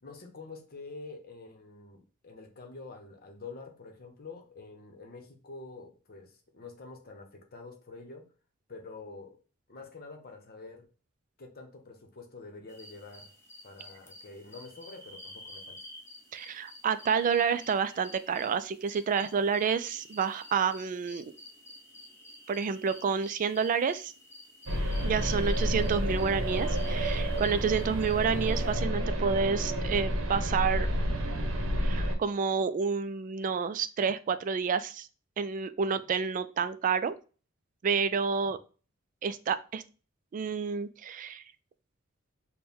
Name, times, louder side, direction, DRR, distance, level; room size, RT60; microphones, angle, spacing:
voice 1, 0.0-8.3 8.7-9.4 9.7-10.9 11.4-13.4 13.6-15.8, left 3 dB, 50° left, 4 dB, 0.8 m, -47 dB
sound 1, 12.7-28.8, left 1 dB, 15° left, 0.7 m, -50 dB
voice 2, 16.3-21.2 22.5-24.1 25.0-30.9 31.8-35.1 35.4-37.1 37.8-38.6 39.2-39.8 40.3-41.4, right 6 dB, 40° right, 13 dB, 0.3 m, -29 dB
sound 2, 24.7-32.1, equal, 75° right, 0.8 m, -30 dB
4.3 x 2.2 x 3.5 m, 0.36 s
head